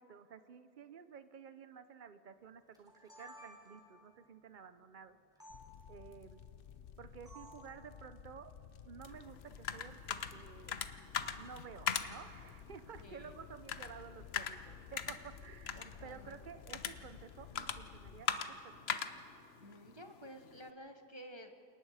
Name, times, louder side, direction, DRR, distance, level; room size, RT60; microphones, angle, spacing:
voice 1, 0.0-5.2 5.9-6.4 7.0-8.5 8.8-10.7 11.4-18.9, right 7 dB, 65° right, 11 dB, 0.5 m, -53 dB
sound 1, 2.7-4.0 5.4-5.6 7.3-7.7, right 1 dB, ahead, 3.9 m, -54 dB
sound 2, 5.5-18.2, left 8 dB, 80° left, 0.5 m, -55 dB
sound 3, 9.0-20.7, left 7 dB, 50° left, 0.8 m, -42 dB
voice 2, 13.0-13.3 15.8-16.4 19.6-21.7, equal, 25° right, 5 dB, 0.7 m, -52 dB
28.5 x 19.0 x 4.9 m, 3.0 s
omnidirectional pair, 1.7 m